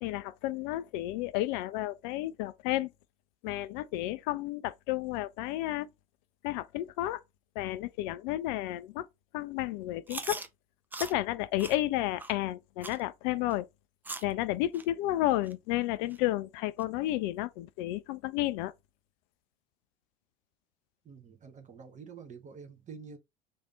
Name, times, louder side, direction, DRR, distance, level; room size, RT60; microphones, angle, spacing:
voice 1, 0.0-2.9 3.4-5.9 6.4-7.2 7.6-9.1 9.3-10.4 11.0-13.7 14.2-18.7, left 15 dB, 50° left, 0.5 m, -32 dB
Chewing mastication, 10.1-10.5 10.9-11.1 11.6-11.8 12.2-12.3 12.8-13.0 13.5-13.6 14.0-14.3 14.7-14.8 15.5-15.6 16.1-16.2 16.8-16.9, right 3 dB, 5° right, 0.4 m, -40 dB
voice 2, 21.0-23.2, right 6 dB, 25° right, 1.0 m, -48 dB
3.3 x 2.6 x 3.8 m
figure-of-eight pair, 65°, 30 cm